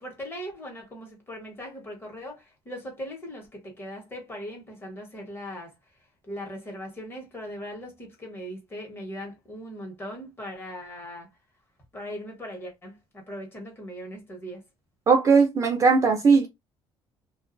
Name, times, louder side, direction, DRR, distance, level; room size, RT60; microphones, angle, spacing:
voice 1, 0.0-5.7 6.3-11.3 11.9-14.6, equal, 20° left, 1.0 m, -39 dB
voice 2, 15.1-16.5, right 4 dB, 30° right, 0.5 m, -19 dB
2.3 x 2.3 x 2.5 m
cardioid pair, 155°, 10 cm